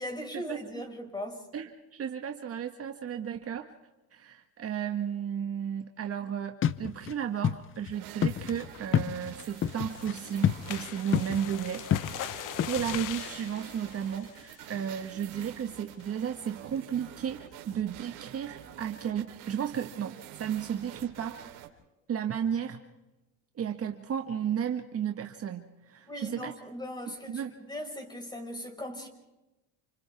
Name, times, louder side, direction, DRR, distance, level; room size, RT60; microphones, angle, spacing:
voice 1, 0.0-1.5 26.1-29.1, equal, 10° left, 5.4 m, -39 dB
voice 2, 1.5-3.7 4.1-11.9 12.2-21.4 22.1-22.8 23.6-26.5 27.1-27.5, right 8 dB, 35° right, 1.6 m, -34 dB
sound 1, 6.6-7.1 7.4-7.6 7.9-8.0 8.2-10.1 10.4-10.8 11.1-11.6 11.9-13.1, left 9 dB, 30° left, 0.8 m, -28 dB
sound 2, 7.9-21.7, right 12 dB, 70° right, 3.8 m, -48 dB
sound 3, 9.2-15.0 15.4-15.7 16.0-16.1 16.5-16.8, left 12 dB, 50° left, 1.1 m, -42 dB
30.0 x 28.5 x 3.6 m
supercardioid pair, 110°, 40 cm